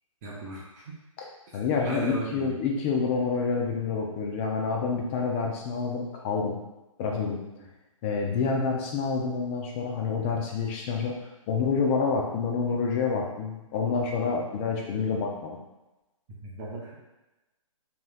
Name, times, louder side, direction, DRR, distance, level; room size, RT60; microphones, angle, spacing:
voice 1, 0.2-0.9 1.5-2.6 16.4-17.0, right 3 dB, 30° right, -4 dB, 0.6 m, -36 dB
voice 2, 1.5-6.6 7.0-7.4 8.0-11.1 11.5-15.6, left 5 dB, 20° left, 0 dB, 0.4 m, -28 dB
3.0 x 2.9 x 2.2 m, 1.0 s
hypercardioid pair, 145°, 18 cm